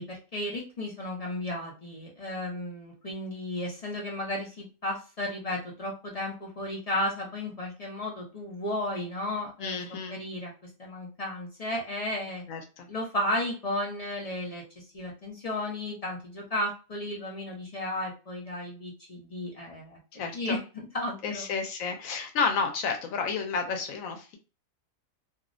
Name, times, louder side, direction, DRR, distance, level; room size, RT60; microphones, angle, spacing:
voice 1, 0.0-9.8 10.1-10.5 10.8-12.4 12.9-20.0 20.3-21.5, left 1 dB, 45° left, -2 dB, 0.5 m, -34 dB
voice 2, 9.6-10.2 12.5-12.9 20.1-20.6 21.2-24.4, left 5 dB, 80° left, 5 dB, 1.0 m, -31 dB
2.6 x 2.0 x 2.4 m, 0.32 s
omnidirectional pair, 1.4 m